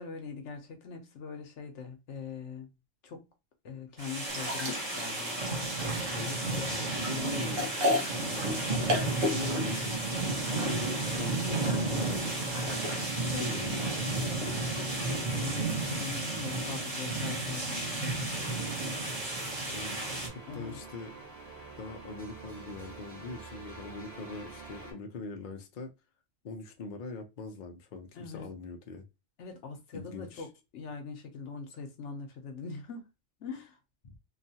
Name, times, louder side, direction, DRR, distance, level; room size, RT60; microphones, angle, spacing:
voice 1, 0.0-2.7 3.0-3.3 3.6-5.5 10.7-10.8 13.1-19.0 20.5-20.8 28.1-28.5 29.4-30.5 30.7-33.1 33.4-33.8, left 5 dB, 70° left, 1.1 m, -42 dB
sound 1, 4.0-20.3, right 2 dB, 30° right, 0.9 m, -32 dB
sound 2, 4.3-13.1, left 1 dB, 80° right, 1.1 m, -35 dB
voice 2, 6.2-10.0 10.6-12.8 13.4-13.8 19.7-20.2 20.5-21.1 21.8-25.9 26.4-29.1 29.9-30.5 34.0-34.2, left 3 dB, 50° left, 0.6 m, -42 dB
sound 3, 18.4-24.9, right 3 dB, 55° right, 1.3 m, -47 dB
2.9 x 2.3 x 2.7 m
omnidirectional pair, 1.3 m